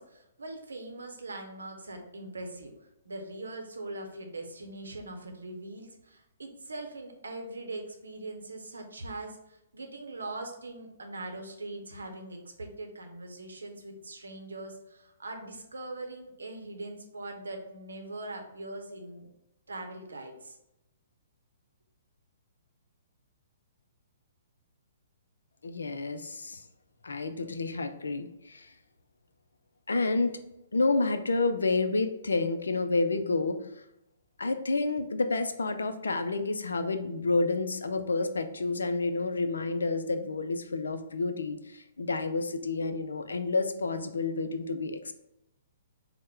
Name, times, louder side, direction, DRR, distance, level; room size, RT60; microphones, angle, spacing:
voice 1, 0.0-19.3 19.7-20.6, right 2 dB, 70° right, 3 dB, 0.7 m, -41 dB
voice 2, 25.6-26.6 27.0-28.7 29.9-30.4 30.7-33.6 34.4-45.1, left 3 dB, 70° left, 8 dB, 0.4 m, -29 dB
4.2 x 2.1 x 3.5 m, 0.87 s
figure-of-eight pair, 120°, 0 cm